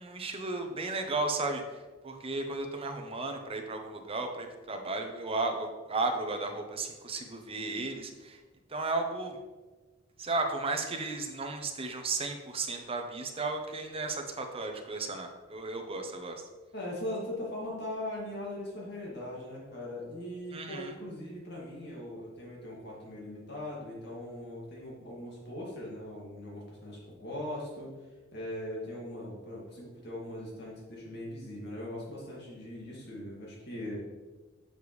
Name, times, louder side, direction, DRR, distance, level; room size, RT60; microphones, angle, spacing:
voice 1, 0.0-8.4 8.7-9.4 10.2-16.4 20.5-20.9, right 3 dB, 30° right, 4 dB, 0.7 m, -34 dB
voice 2, 16.7-27.9 28.3-34.0, left 1 dB, 60° left, -4 dB, 2.2 m, -40 dB
7.0 x 6.6 x 3.2 m, 1.3 s
head